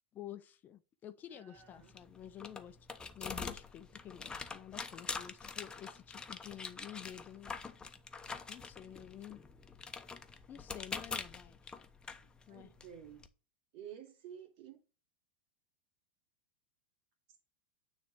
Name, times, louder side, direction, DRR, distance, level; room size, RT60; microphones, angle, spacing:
voice 1, 0.1-2.8 3.1-7.6 8.5-9.4 10.5-11.7 12.5-12.7, left 11 dB, 35° left, 0.6 m, -50 dB
voice 2, 1.3-2.0 12.5-13.3 13.7-14.8 17.3-17.4, right 9 dB, 55° right, 2.5 m, -52 dB
sound 1, 1.6-13.3, left 4 dB, 15° left, 0.9 m, -45 dB
9.3 x 3.4 x 6.4 m
hypercardioid pair, 100°, 6 cm